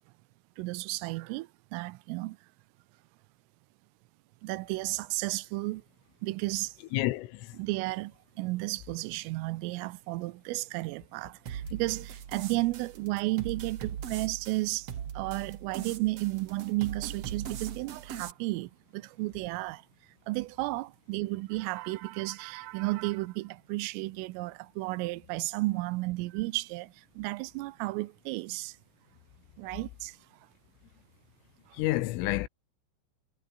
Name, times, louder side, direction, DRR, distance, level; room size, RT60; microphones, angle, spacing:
voice 1, 0.6-2.4 4.4-5.8 6.2-6.7 7.6-8.1 8.4-14.9 15.2-19.8 20.3-28.7 29.6-30.2, right 21 dB, 90° right, 3.4 m, -33 dB
voice 2, 6.9-7.6 31.7-32.5, left 17 dB, 85° left, 3.7 m, -29 dB
sound 1, 11.5-18.3, right 9 dB, 75° right, 1.4 m, -40 dB
omnidirectional pair, 5.7 m